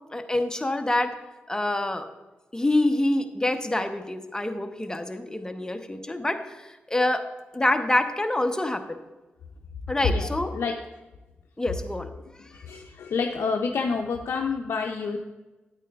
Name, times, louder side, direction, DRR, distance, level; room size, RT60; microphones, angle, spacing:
voice 1, 0.1-1.1 1.5-2.1 2.5-7.2 7.5-9.0 9.9-10.5 11.6-12.1, left 1 dB, 15° left, 6 dB, 0.9 m, -26 dB
voice 2, 10.0-10.7 12.5-15.2, left 5 dB, 75° left, 2 dB, 0.5 m, -28 dB
8.8 x 8.8 x 2.3 m, 1.1 s
supercardioid pair, 40°, 4 cm